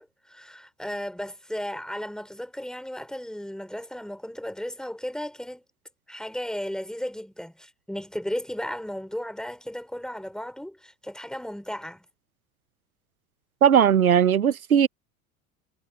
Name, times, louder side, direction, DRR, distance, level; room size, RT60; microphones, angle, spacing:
voice 1, 0.0-5.6 6.1-12.0, equal, ahead, 4.0 m, -35 dB
voice 2, 13.6-14.9, right 8 dB, 90° right, 0.9 m, -18 dB
figure-of-eight pair, 70°, 42 cm